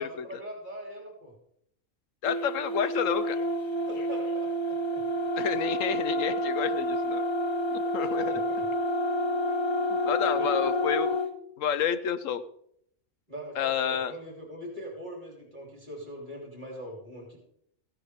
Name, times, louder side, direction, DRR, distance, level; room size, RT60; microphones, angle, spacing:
voice 1, 0.0-1.3 3.9-5.0 8.2-8.7 10.4-10.6 13.3-17.4, equal, 35° right, -1 dB, 3.7 m, -41 dB
voice 2, 2.2-3.4 5.4-7.2 7.7-8.4 9.9-11.2 11.6-12.4 13.6-14.1, left 8 dB, 70° left, 13 dB, 1.0 m, -30 dB
sound 1, 2.3-11.3, left 1 dB, 30° left, 0.6 m, -29 dB
15.5 x 10.5 x 3.6 m, 0.70 s
omnidirectional pair, 1.4 m